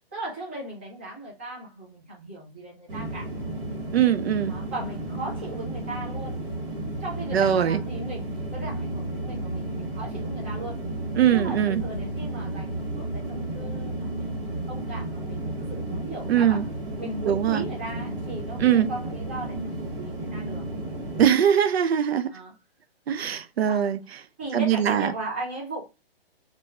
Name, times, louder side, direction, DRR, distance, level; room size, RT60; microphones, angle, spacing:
voice 1, 0.1-3.3 4.4-6.4 7.0-10.8 11.3-14.3 14.7-16.7 17.0-20.6 22.3-22.5 23.6-23.9 24.4-25.9, right 2 dB, 10° right, 0.5 m, -37 dB
sound 1, 2.9-21.3, right 1 dB, 55° right, 1.5 m, -33 dB
voice 2, 3.9-4.6 7.3-7.8 11.1-11.8 16.3-16.7 17.3-17.6 18.6-18.9 21.2-22.3 23.1-24.0 24.5-25.1, right 9 dB, 80° right, 0.5 m, -21 dB
4.0 x 2.3 x 2.3 m
hypercardioid pair, 170°, 31 cm